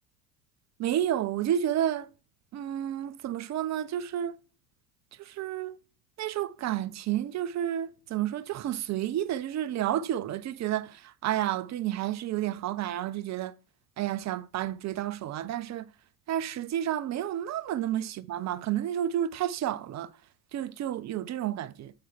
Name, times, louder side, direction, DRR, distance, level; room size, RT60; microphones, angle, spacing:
voice 1, 0.8-2.1 2.5-4.4 5.2-5.7 6.2-13.5 14.0-15.9 16.3-20.1 20.5-21.9, right 11 dB, 35° right, 0.8 m, -31 dB
11.5 x 7.8 x 3.5 m
hypercardioid pair, 75°, 49 cm